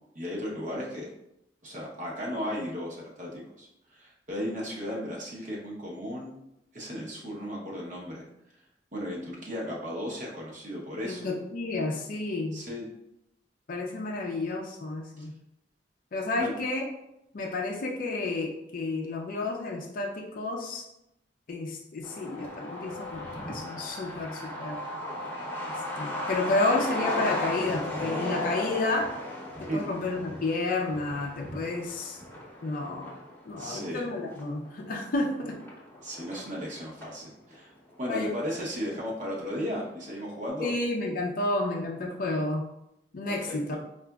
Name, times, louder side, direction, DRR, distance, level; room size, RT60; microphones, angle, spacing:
voice 1, 0.1-1.1 1.6-6.4 6.7-8.2 8.9-11.3 12.5-12.9 15.2-15.3 16.4-16.5 29.7-29.8 33.6-34.0 36.0-37.7 38.0-40.7 43.3-43.8, equal, 45° right, -3 dB, 0.8 m, -35 dB
voice 2, 11.0-12.6 13.7-15.3 16.1-16.9 17.3-20.8 21.5-24.8 26.0-29.1 29.6-32.2 32.6-33.1 33.5-35.6 38.1-38.3 40.6-42.6 43.1-43.8, left 2 dB, 50° left, 0 dB, 0.4 m, -31 dB
Truck, 22.0-37.2 37.5-37.6 37.9-38.8 39.0-39.1 39.5-39.9, left 1 dB, 15° left, 0.8 m, -36 dB
4.8 x 2.5 x 2.3 m, 0.83 s
head